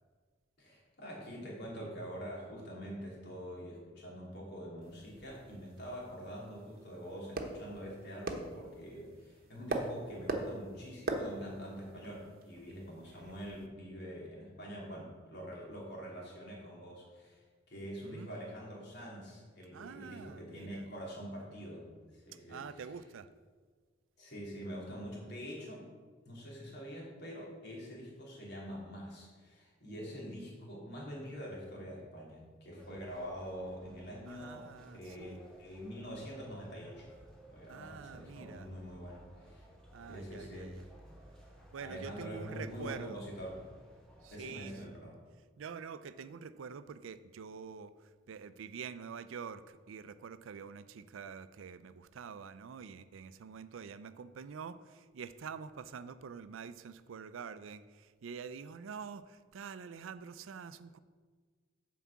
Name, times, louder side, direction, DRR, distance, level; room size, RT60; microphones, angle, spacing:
voice 1, 0.6-22.8 24.2-25.9 26.2-34.7 34.9-37.1 37.5-39.6 40.1-40.8 41.8-43.6 44.3-45.2, equal, 60° left, -4 dB, 2.8 m, -45 dB
sound 1, 4.8-13.7, right 2 dB, 50° right, 0.9 m, -42 dB
voice 2, 17.8-18.3 19.7-20.9 22.3-23.3 34.3-35.4 37.7-38.7 39.9-40.8 41.7-43.2 44.2-44.8 45.6-61.0, right 6 dB, 90° right, 14 dB, 0.4 m, -46 dB
sound 2, 32.8-44.8, right 1 dB, 5° left, 1.9 m, -57 dB
7.3 x 4.7 x 7.1 m, 1.5 s
head